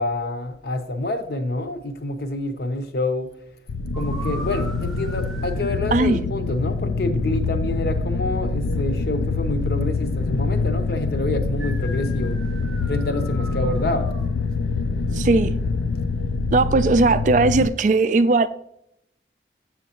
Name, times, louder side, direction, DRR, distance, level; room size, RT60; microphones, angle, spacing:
voice 1, 0.0-3.3 3.9-12.4 12.9-14.1, left 2 dB, 60° left, 0.7 m, -27 dB
sound 1, 3.7-17.7, left 3 dB, 80° left, 0.4 m, -25 dB
sound 2, 3.9-5.9 11.6-14.3, equal, ahead, 0.7 m, -39 dB
voice 2, 15.2-15.5 16.5-18.5, right 3 dB, 45° right, 0.3 m, -18 dB
7.1 x 7.0 x 2.9 m
head